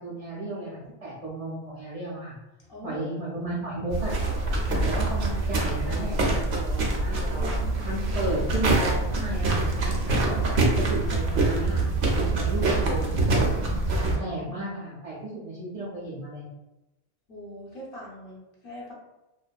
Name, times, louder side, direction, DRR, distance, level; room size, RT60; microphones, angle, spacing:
voice 1, 0.0-2.4 2.8-4.2 4.7-7.5 7.8-10.4 10.8-13.2 14.0-16.4, right 1 dB, 50° right, -7 dB, 0.4 m, -34 dB
voice 2, 2.7-3.0 4.6-4.9 12.5-12.7 13.0-13.1 17.3-18.9, left 1 dB, 60° left, -5 dB, 0.9 m, -42 dB
sound 1, 3.9-14.2, right 2 dB, 75° right, 0.8 m, -25 dB
2.5 x 2.2 x 2.2 m, 0.99 s
omnidirectional pair, 1.1 m